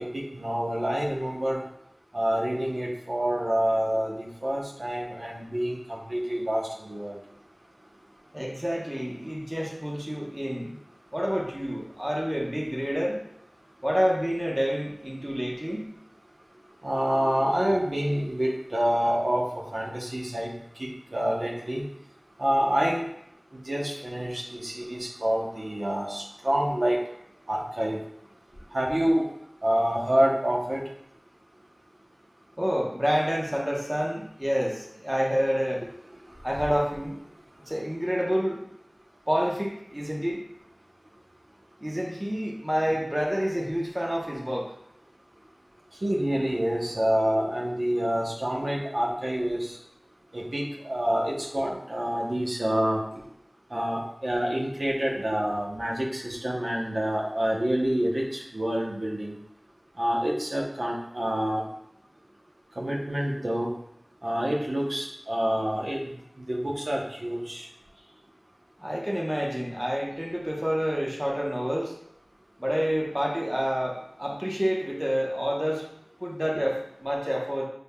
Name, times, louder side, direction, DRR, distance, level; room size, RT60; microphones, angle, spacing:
voice 1, 0.0-1.6 2.1-7.2 16.8-20.5 20.8-21.8 22.4-23.0 23.5-27.0 27.5-28.0 28.7-29.3 29.6-30.8 46.0-49.8 50.3-53.2 53.7-59.4 60.0-61.6 62.8-63.7 64.2-66.1 66.5-67.7, equal, 85° right, -2 dB, 0.8 m, -27 dB
voice 2, 8.3-10.7 11.1-13.2 13.8-15.9 32.6-35.9 36.4-37.2 37.7-38.6 39.3-40.4 41.8-44.7 68.8-71.9 72.6-75.8 76.2-77.7, equal, 15° right, -2 dB, 1.0 m, -28 dB
5.4 x 3.4 x 2.3 m, 0.74 s
wide cardioid pair, 40°, 0 cm